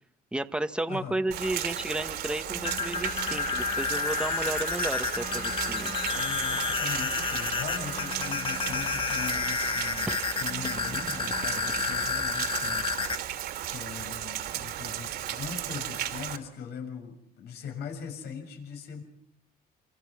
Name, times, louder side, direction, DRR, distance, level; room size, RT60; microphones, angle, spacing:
voice 1, 0.3-5.9 10.1-10.2, right 1 dB, 5° right, 8 dB, 1.3 m, -32 dB
voice 2, 0.9-1.2 6.1-10.1 10.4-13.3 13.7-19.0, left 6 dB, 75° left, 5 dB, 6.9 m, -40 dB
Rain, 1.3-16.4, right 11 dB, 70° right, 2.6 m, -35 dB
sound 1, 2.5-13.2, left 5 dB, 30° left, 1.7 m, -31 dB
Trumpet, 2.9-8.3, left 8 dB, 50° left, 1.5 m, -42 dB
27.5 x 27.5 x 6.2 m, 0.70 s
cardioid pair, 110°, 17 cm